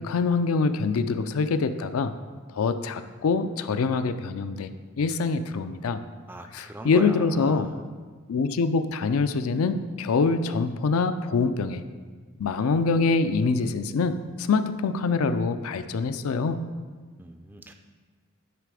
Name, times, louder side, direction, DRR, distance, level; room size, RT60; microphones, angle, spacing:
voice 1, 0.0-2.1 2.5-4.7 5.0-6.0 6.5-7.7 8.3-11.8 12.4-16.6, left 4 dB, 80° left, 10 dB, 0.4 m, -25 dB
voice 2, 6.3-7.7 17.2-17.7, right 1 dB, 10° right, 6 dB, 0.3 m, -39 dB
10.0 x 4.2 x 4.8 m, 1.5 s
head